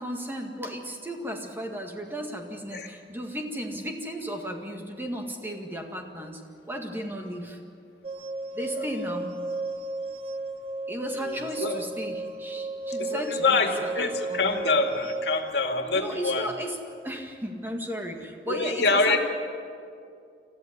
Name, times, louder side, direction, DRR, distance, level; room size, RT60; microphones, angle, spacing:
voice 1, 0.0-6.4 6.7-7.6 8.5-9.3 10.9-14.6 15.9-16.8 17.0-19.2, equal, 10° right, 2 dB, 1.9 m, -35 dB
sound 1, 8.0-15.5, right 2 dB, 35° right, 0.6 m, -34 dB
voice 2, 11.2-11.9 13.0-16.5 18.5-19.2, left 3 dB, 80° left, 4 dB, 2.2 m, -26 dB
28.0 x 14.0 x 9.6 m, 2.4 s
head